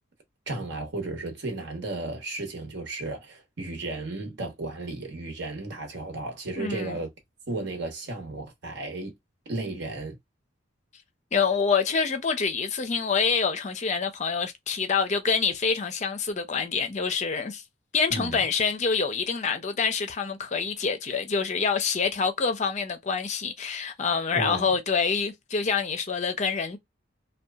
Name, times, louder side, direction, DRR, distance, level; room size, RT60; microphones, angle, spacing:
voice 1, 0.5-7.1 7.5-9.1 9.5-10.2 18.1-18.4 24.3-24.6, right 2 dB, 60° right, 1.0 m, -34 dB
voice 2, 6.6-7.0 11.3-17.6 17.9-26.8, left 5 dB, 35° left, 0.5 m, -26 dB
2.8 x 2.2 x 2.3 m
head